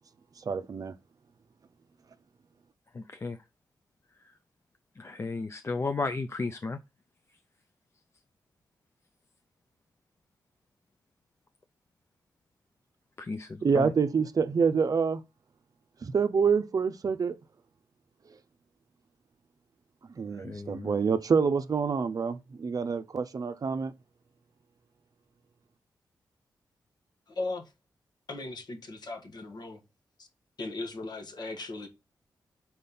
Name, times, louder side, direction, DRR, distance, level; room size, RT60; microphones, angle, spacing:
voice 1, 0.5-0.9 13.6-15.2 16.0-17.4 20.1-23.9, right 5 dB, 55° right, 0.6 m, -27 dB
voice 2, 2.9-3.4 5.0-6.8 13.2-13.9 20.4-21.0, left 3 dB, 35° left, 0.5 m, -34 dB
voice 3, 27.3-27.6 28.3-29.8 30.2-30.3 30.6-31.9, left 2 dB, 65° left, 1.5 m, -37 dB
4.3 x 4.2 x 5.4 m
cardioid pair, 55°, 8 cm